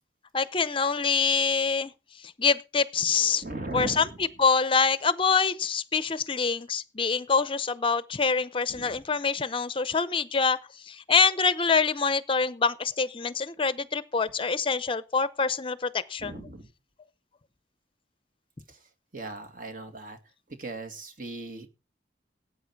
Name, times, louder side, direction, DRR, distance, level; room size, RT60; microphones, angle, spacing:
voice 1, 0.3-1.9 2.2-3.4 3.7-10.6 10.8-16.4, left 5 dB, 30° left, 15 dB, 0.6 m, -25 dB
voice 2, 3.4-4.2 8.7-9.0 16.2-16.7 19.1-20.2 20.6-21.7, right 2 dB, 50° right, 6 dB, 2.3 m, -38 dB
18.0 x 8.7 x 4.7 m, 0.31 s
head